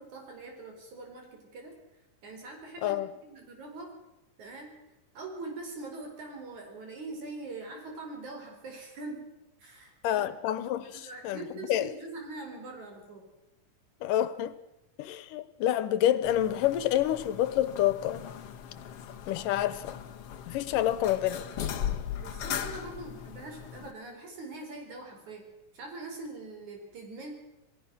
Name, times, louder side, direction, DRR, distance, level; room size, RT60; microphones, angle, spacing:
voice 1, 0.0-1.7 2.2-3.0 3.3-3.9 4.4-4.7 5.1-9.3 9.6-10.3 10.8-13.2 22.2-25.5 25.7-27.3, right 2 dB, 60° right, 5.9 m, -43 dB
voice 2, 10.0-11.9 14.0-14.6 15.0-18.2 19.3-20.0 20.5-21.5, left 12 dB, 85° left, 2.6 m, -28 dB
sound 1, 16.2-23.9, left 9 dB, 55° left, 1.9 m, -38 dB
27.5 x 18.0 x 6.2 m
omnidirectional pair, 3.8 m